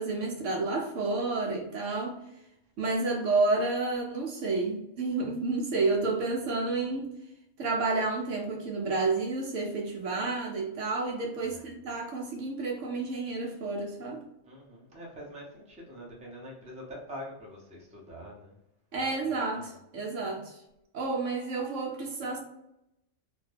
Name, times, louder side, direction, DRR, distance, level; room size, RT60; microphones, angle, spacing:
voice 1, 0.0-2.2 2.8-7.1 7.6-14.2 18.9-20.6 20.9-22.4, right 3 dB, 70° right, 0.9 m, -30 dB
voice 2, 14.4-18.5 19.0-19.7, equal, 5° right, 0.6 m, -45 dB
2.6 x 2.2 x 3.3 m
omnidirectional pair, 1.4 m